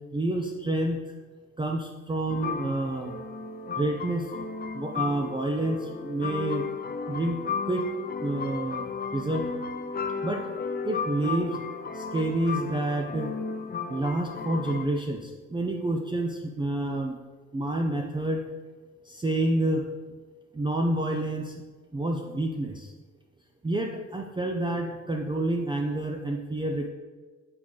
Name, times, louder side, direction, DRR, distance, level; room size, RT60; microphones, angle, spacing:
voice 1, 0.1-1.0 1.6-3.1 3.8-4.3 4.7-6.7 7.1-7.4 7.7-7.9 8.2-8.8 9.1-9.5 10.2-10.5 10.8-11.6 11.9-13.3 13.9-17.2 17.5-18.4 19.1-19.9 20.5-21.5 21.9-22.9 23.6-26.9, right 1 dB, 15° right, 2 dB, 0.4 m, -28 dB
sound 1, 2.3-14.8, left 5 dB, 30° left, 0.6 m, -34 dB
7.7 x 3.1 x 4.0 m, 1.3 s
cardioid pair, 90°, 30 cm